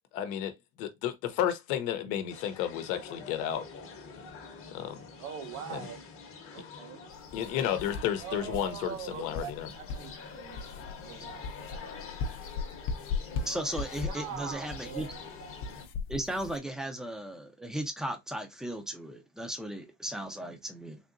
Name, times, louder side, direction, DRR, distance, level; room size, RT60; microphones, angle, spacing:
voice 1, 0.1-0.5 0.8-3.6 4.7-5.0 5.7-5.8 7.3-9.7, left 10 dB, 90° left, 0.8 m, -32 dB
sound 1, 2.3-15.9, left 5 dB, 35° left, 0.8 m, -46 dB
voice 2, 5.2-6.0 6.5-7.0 8.2-10.6 11.0-12.0 14.1-15.7, right 8 dB, 85° right, 0.9 m, -43 dB
sound 2, 7.1-16.6, left 4 dB, 60° left, 0.7 m, -39 dB
voice 3, 13.4-15.1 16.1-21.0, right 1 dB, ahead, 0.4 m, -36 dB
3.6 x 2.7 x 2.5 m
cardioid pair, 130°, 41 cm